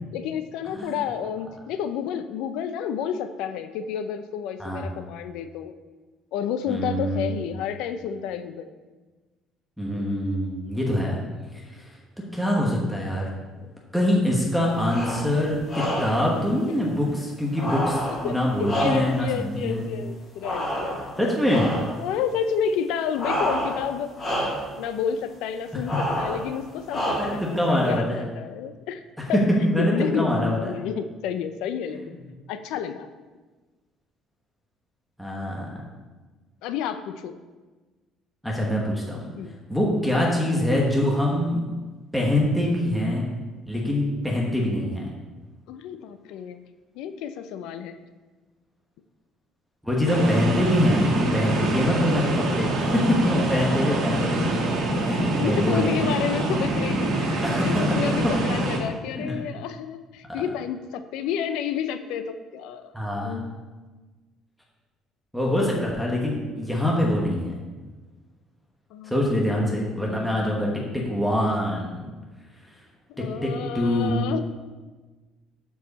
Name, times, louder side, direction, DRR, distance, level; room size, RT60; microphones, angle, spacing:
voice 1, 0.1-5.7 6.3-8.7 9.9-10.1 13.6-13.7 18.2-21.3 22.0-24.1 24.8-29.0 29.3-29.5 29.8-32.0 32.5-33.1 36.6-37.4 39.4-39.9 45.7-46.6 46.9-48.0 50.0-50.6 55.4-62.9 63.2-63.7 68.9-70.8 73.1-74.4, left 8 dB, 85° left, 10 dB, 0.6 m, -31 dB
voice 2, 6.7-7.4 9.8-11.2 11.5-11.8 12.3-13.3 13.9-19.8 21.2-21.7 27.2-28.2 29.3-30.7 35.2-35.7 38.4-39.3 39.7-41.7 42.1-43.2 43.7-45.1 49.8-55.9 57.4-57.8 59.2-59.4 62.9-63.4 65.3-67.6 69.0-72.1 73.2-74.1, left 1 dB, ahead, -4 dB, 1.2 m, -24 dB
sound 1, 14.8-15.3 15.7-16.3 17.5-19.3 20.4-21.2 21.5-22.0 23.2-23.9 24.2-24.7 25.9-26.5 26.9-27.5, equal, 20° left, 2.2 m, -28 dB
sound 2, 50.1-58.8, right 1 dB, 65° right, 2.2 m, -25 dB
12.0 x 4.8 x 4.1 m, 1.3 s
cardioid pair, 165°, 0 cm